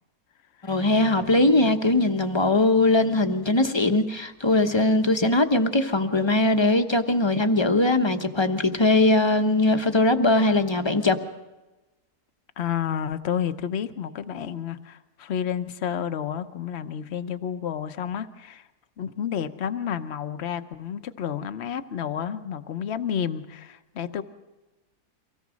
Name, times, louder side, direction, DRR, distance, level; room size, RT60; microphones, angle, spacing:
voice 1, 0.6-11.2, left 2 dB, 20° left, 0.9 m, -21 dB
voice 2, 12.6-18.7 19.0-24.2, left 8 dB, 50° left, 1.1 m, -30 dB
24.5 x 17.5 x 6.3 m
omnidirectional pair, 1.6 m